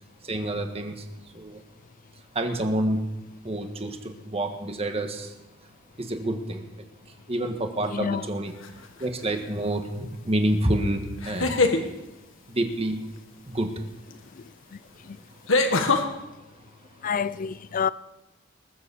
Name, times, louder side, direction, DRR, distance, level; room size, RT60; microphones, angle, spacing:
voice 1, 0.2-1.0 1.3-1.6 2.3-3.1 3.4-5.3 6.0-6.7 7.3-8.5 9.0-11.7 12.5-13.1 13.5-13.7, right 1 dB, 30° right, 1.5 m, -28 dB
voice 2, 7.9-8.3 14.3-14.4 14.7-14.8 15.0-15.2 17.0-17.9, left 6 dB, 45° left, 0.4 m, -28 dB
sound 1, 8.6-9.0 11.2-11.8 14.1-14.2 15.5-16.0, left 3 dB, 80° left, 1.5 m, -22 dB
21.0 x 7.1 x 7.1 m
head